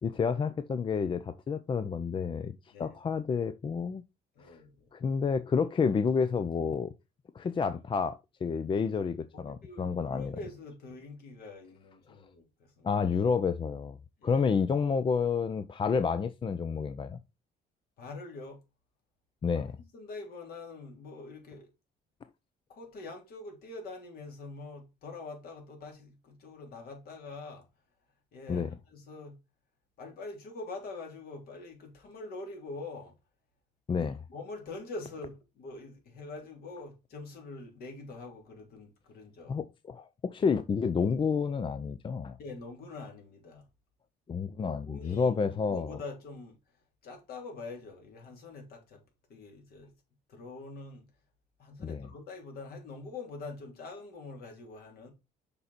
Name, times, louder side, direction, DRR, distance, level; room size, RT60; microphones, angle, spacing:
voice 1, 0.0-4.0 4.5-4.6 4.9-6.9 7.3-10.4 12.8-14.0 14.2-17.2 19.4-19.7 28.5-28.7 33.9-34.2 39.5-42.4 44.3-46.0 51.8-52.1, left 5 dB, 30° left, 0.6 m, -30 dB
voice 2, 4.4-4.9 9.4-13.0 14.2-14.4 18.0-18.6 19.5-19.7 19.9-21.7 22.7-27.7 28.3-29.4 30.0-33.2 34.0-39.6 42.4-43.6 44.9-46.6 47.0-49.0 49.3-49.9 50.3-51.1 51.6-55.1, left 3 dB, 65° left, 3.7 m, -44 dB
6.9 x 5.2 x 4.2 m
cardioid pair, 110°, 17 cm